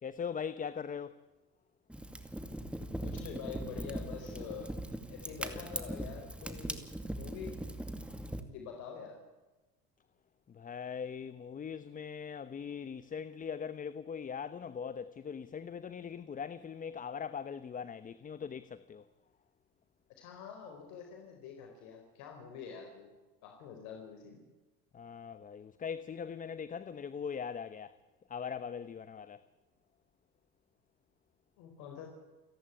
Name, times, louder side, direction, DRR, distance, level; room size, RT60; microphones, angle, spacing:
voice 1, 0.0-1.2 10.5-19.1 24.9-27.9 28.3-29.4, left 7 dB, 30° left, 0.9 m, -41 dB
Fire, 1.9-8.4, right 1 dB, 5° right, 2.3 m, -40 dB
voice 2, 3.0-4.7 5.1-6.9 7.1-7.6 8.4-9.2 20.2-23.1 23.4-24.4 31.6-32.1, left 7 dB, 75° left, 4.5 m, -46 dB
29.5 x 11.5 x 10.0 m
supercardioid pair, 105°, 29 cm